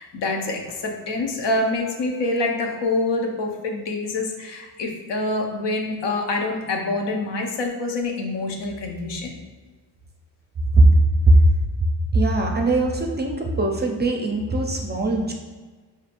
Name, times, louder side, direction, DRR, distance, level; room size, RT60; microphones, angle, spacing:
voice 1, 0.0-9.3, left 2 dB, 70° left, 2 dB, 0.8 m, -26 dB
voice 2, 12.1-15.3, right 2 dB, 25° right, 1 dB, 0.5 m, -20 dB
5.0 x 2.7 x 2.5 m, 1.4 s
cardioid pair, 85°, 43 cm